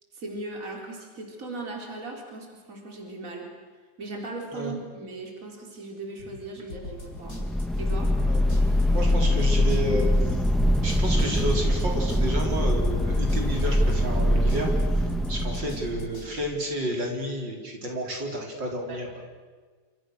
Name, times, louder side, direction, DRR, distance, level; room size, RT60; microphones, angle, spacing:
voice 1, 0.1-3.5 4.0-7.4 7.8-8.1 18.9-19.0, right 2 dB, 45° right, 1 dB, 4.3 m, -38 dB
sound 1, 6.7-16.3, left 2 dB, 50° left, 5.7 m, -41 dB
sound 2, 7.1-16.4, left 1 dB, ahead, 0.9 m, -23 dB
voice 2, 8.1-8.4 8.9-10.4 10.8-14.7 15.3-19.1, equal, 75° right, 0 dB, 5.1 m, -31 dB
28.5 x 27.5 x 6.5 m, 1.5 s
omnidirectional pair, 2.0 m